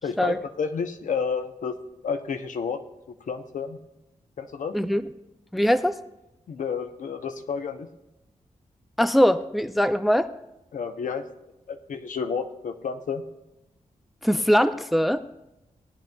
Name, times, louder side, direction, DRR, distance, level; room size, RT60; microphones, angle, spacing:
voice 1, 0.0-1.7 2.0-2.8 3.3-3.8 4.4-4.7 6.5-7.9 10.7-11.2 11.7-13.2, left 6 dB, 75° left, 7 dB, 0.8 m, -30 dB
voice 2, 5.5-6.0 9.0-10.3 14.2-15.2, equal, ahead, 11 dB, 0.5 m, -21 dB
19.0 x 10.5 x 2.3 m, 0.93 s
cardioid pair, 75°, 13 cm